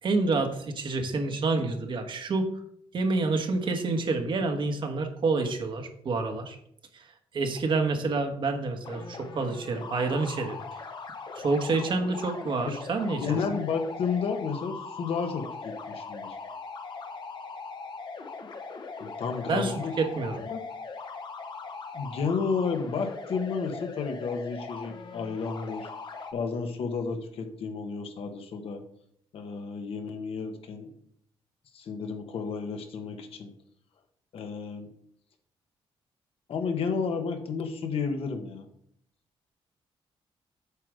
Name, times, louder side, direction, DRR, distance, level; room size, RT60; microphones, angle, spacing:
voice 1, 0.0-2.5 2.9-6.6 6.9-7.1 7.3-10.6 11.3-13.4 19.5-20.4, right 3 dB, 55° right, 6 dB, 1.3 m, -28 dB
sound 1, 8.8-26.3, left 4 dB, 50° left, 0.9 m, -40 dB
voice 2, 13.2-16.4 19.0-19.9 20.4-20.6 21.9-25.9 26.3-28.8 29.3-30.9 31.7-33.5 34.3-34.9 36.5-38.7, left 5 dB, 70° left, 6 dB, 1.3 m, -32 dB
8.4 x 5.0 x 4.8 m, 0.68 s
cardioid pair, 100°, 10 cm